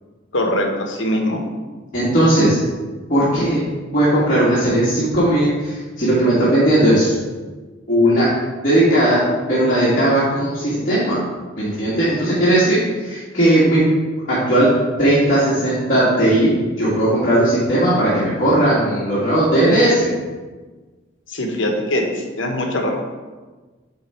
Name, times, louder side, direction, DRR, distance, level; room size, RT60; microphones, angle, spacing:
voice 1, 0.3-1.4 21.3-22.9, left 1 dB, 75° left, 2 dB, 1.2 m, -22 dB
voice 2, 1.9-2.6 3.1-3.7 3.9-7.1 7.9-8.3 8.6-11.2 11.6-13.8 14.3-14.7 15.0-16.5 16.8-20.1, right 1 dB, 40° left, -11 dB, 2.0 m, -17 dB
8.9 x 3.7 x 4.4 m, 1.3 s
head